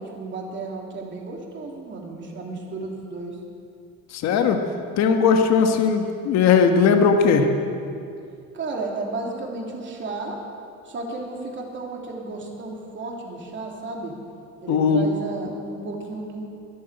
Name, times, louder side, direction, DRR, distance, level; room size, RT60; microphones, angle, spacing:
voice 1, 0.0-3.4 8.5-10.4 10.8-14.1 14.6-16.4, right 3 dB, 35° right, 0 dB, 3.1 m, -33 dB
voice 2, 4.1-4.6 5.0-7.5 14.7-15.1, left 6 dB, 55° left, 5 dB, 1.4 m, -18 dB
13.5 x 11.5 x 8.2 m, 2.4 s
supercardioid pair, 105°, 32 cm